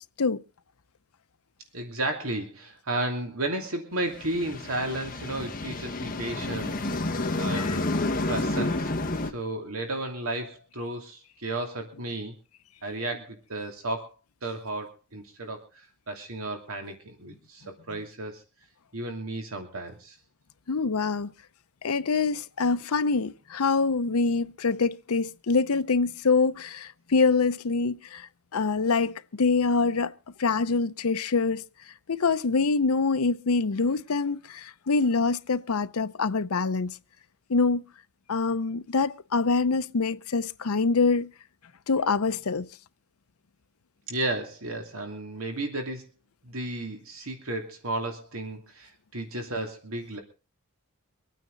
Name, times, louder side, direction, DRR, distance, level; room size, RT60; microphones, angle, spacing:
voice 1, 1.7-8.9 9.2-12.3 12.8-14.1 14.4-18.4 18.9-20.2 44.1-46.0 46.4-50.2, right 2 dB, 75° right, 2.7 m, -33 dB
sound 1, 4.0-9.3, left 2 dB, 40° left, 1.5 m, -30 dB
voice 2, 7.5-7.9 20.7-21.3 21.8-30.1 30.4-31.6 32.1-37.0 37.5-37.8 38.3-41.3 41.9-42.7, left 4 dB, 85° left, 0.7 m, -25 dB
24.5 x 9.4 x 3.9 m
head